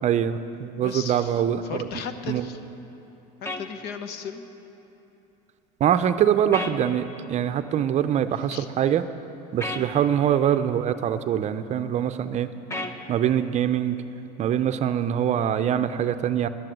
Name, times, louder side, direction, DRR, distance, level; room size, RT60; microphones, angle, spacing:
voice 1, 0.0-1.9 2.3-2.4 5.8-9.0 9.5-12.5 13.1-14.0 14.4-16.5, right 9 dB, 40° right, 11 dB, 0.5 m, -23 dB
voice 2, 0.8-1.3 1.7-2.6 3.6-4.4 8.5-8.7 9.8-9.9, left 6 dB, 65° left, 9 dB, 1.0 m, -36 dB
sound 1, 3.5-3.6 6.5-6.8 9.6-9.8 12.7-13.0, left 2 dB, 15° left, 0.9 m, -31 dB
11.5 x 10.5 x 7.6 m, 3.0 s
supercardioid pair, 120°, 18 cm